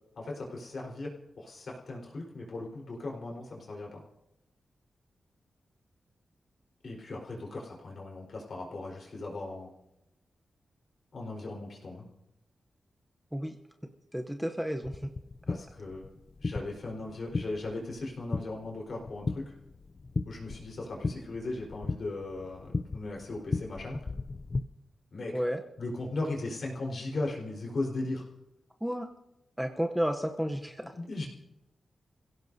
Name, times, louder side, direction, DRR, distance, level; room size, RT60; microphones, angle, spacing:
voice 1, 0.2-1.1 1.4-4.0 6.8-9.7 11.1-12.0 15.5-16.1 16.4-19.5 20.3-24.0 25.1-25.4 25.8-28.2 30.9-31.3, left 2 dB, 55° left, -2 dB, 4.3 m, -37 dB
voice 2, 14.1-15.1 25.3-25.6 28.8-29.1 29.6-30.8, equal, ahead, 4 dB, 0.8 m, -31 dB
sound 1, 14.8-24.6, left 3 dB, 35° left, 0.5 m, -37 dB
28.5 x 16.5 x 2.7 m, 0.92 s
wide cardioid pair, 125°, 0 cm